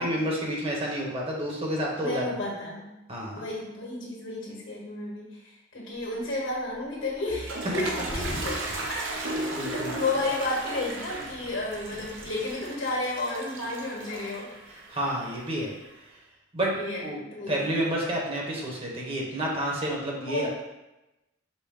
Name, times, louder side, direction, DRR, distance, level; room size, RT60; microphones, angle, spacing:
voice 1, 0.0-2.2 3.1-3.4 9.5-10.0 14.9-15.7 16.5-20.5, right 1 dB, 30° right, -2 dB, 0.9 m, -30 dB
voice 2, 2.0-2.9 3.3-8.6 8.9-14.5 16.7-17.6 20.2-20.5, left 2 dB, 75° left, -4 dB, 1.6 m, -32 dB
sound 1, 6.0-6.3 6.7-6.8 7.1-7.2 7.6-10.6 10.8-12.5, left 1 dB, 45° left, 0.7 m, -40 dB
Toilet flush, 7.0-15.9, right 2 dB, 80° right, 0.7 m, -36 dB
5.3 x 2.0 x 4.8 m, 0.96 s
head